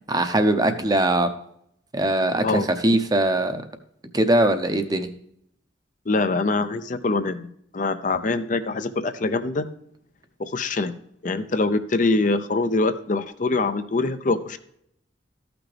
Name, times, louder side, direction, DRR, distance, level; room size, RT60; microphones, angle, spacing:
voice 1, 0.1-1.3 1.9-3.6 4.1-5.1, right 1 dB, 20° right, 8 dB, 0.7 m, -21 dB
voice 2, 2.4-3.0 6.1-7.5 7.7-9.7 10.4-10.9 11.2-14.6, left 3 dB, 45° left, 10 dB, 0.5 m, -24 dB
13.5 x 6.0 x 3.4 m, 0.71 s
head